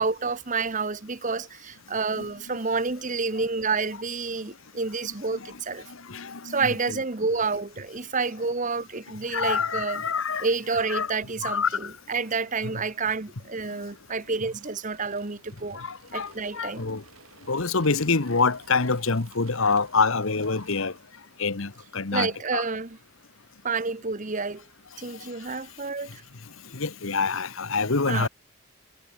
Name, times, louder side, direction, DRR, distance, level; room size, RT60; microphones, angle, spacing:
voice 1, 0.0-5.9 6.4-10.0 10.4-15.8 16.1-16.9 22.1-23.0 23.6-24.6 25.0-26.2 28.1-28.3, right 4 dB, 35° right, 1.0 m, -29 dB
voice 2, 6.1-7.0 9.3-10.5 10.9-11.1 11.4-11.9 15.7-17.0 17.5-20.9 21.4-22.6 26.7-28.3, left 4 dB, 65° left, 1.2 m, -26 dB
sound 1, 14.0-21.2, right 5 dB, 70° right, 7.1 m, -55 dB
head